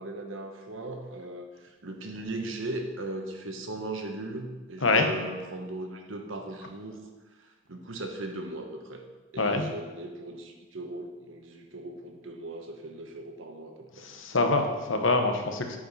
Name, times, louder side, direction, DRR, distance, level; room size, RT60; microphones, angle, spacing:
voice 1, 0.0-9.0 9.3-14.1, right 2 dB, 90° right, 4 dB, 1.2 m, -38 dB
voice 2, 14.0-15.8, left 3 dB, 90° left, 5 dB, 1.0 m, -25 dB
8.7 x 5.1 x 5.6 m, 1.2 s
head